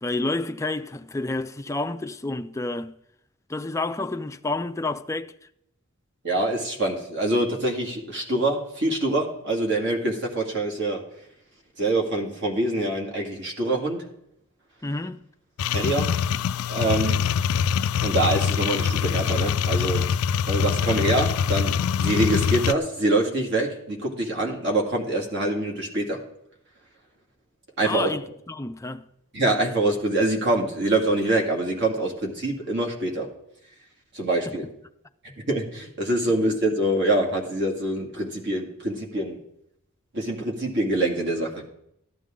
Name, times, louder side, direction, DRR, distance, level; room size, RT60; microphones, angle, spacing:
voice 1, 0.0-2.9 3.5-5.3 14.8-15.2 27.8-29.1 34.5-34.6, left 2 dB, 15° left, 0.4 m, -29 dB
voice 2, 6.2-11.0 11.8-14.0 15.7-16.1 16.7-17.2 18.0-20.0 20.5-26.2 27.8-28.2 29.3-33.3 34.1-34.7 35.5-39.4 40.1-41.5, right 1 dB, 55° right, 2.3 m, -25 dB
sound 1, 15.6-22.7, left 7 dB, 85° left, 0.4 m, -24 dB
14.5 x 11.0 x 3.8 m
head